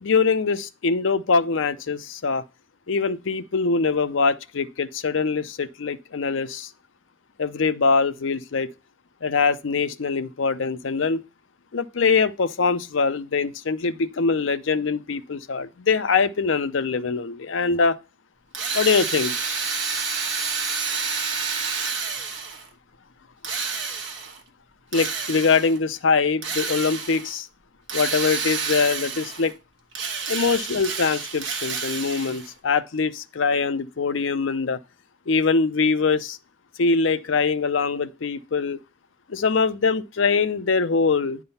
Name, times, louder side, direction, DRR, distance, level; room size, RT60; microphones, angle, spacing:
voice 1, 0.0-2.4 2.9-6.7 7.4-8.7 9.2-11.2 11.7-18.0 18.7-19.3 24.9-27.5 27.9-29.5 30.3-34.8 35.3-36.4 36.8-38.8 39.3-41.4, left 4 dB, 75° left, 0.6 m, -23 dB
Drill, 18.5-22.7 23.4-24.4 24.9-25.8 26.4-27.3 27.9-29.5 29.9-32.5, right 5 dB, 65° right, 1.3 m, -29 dB
9.7 x 3.7 x 5.5 m
head